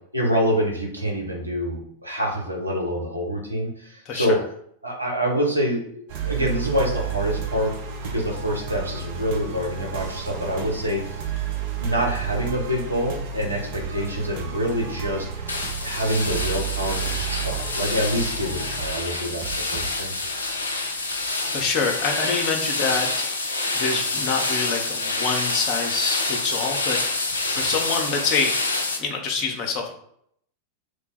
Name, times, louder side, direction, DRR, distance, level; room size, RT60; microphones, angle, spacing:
voice 1, 0.1-4.4 4.8-5.8 6.2-7.7 8.0-11.2 11.8-15.5 15.8-20.1, equal, 85° right, 0 dB, 0.9 m, -26 dB
voice 2, 4.1-4.4 21.5-23.3 23.7-27.0 27.5-28.5 29.0-29.9, left 4 dB, 35° left, 2 dB, 0.6 m, -26 dB
sound 1, 6.1-21.9, right 7 dB, 50° right, 0.6 m, -32 dB
sound 2, 15.5-29.0, left 3 dB, 75° left, 0.5 m, -27 dB
3.1 x 2.2 x 4.2 m, 0.68 s
figure-of-eight pair, 90°, 0 cm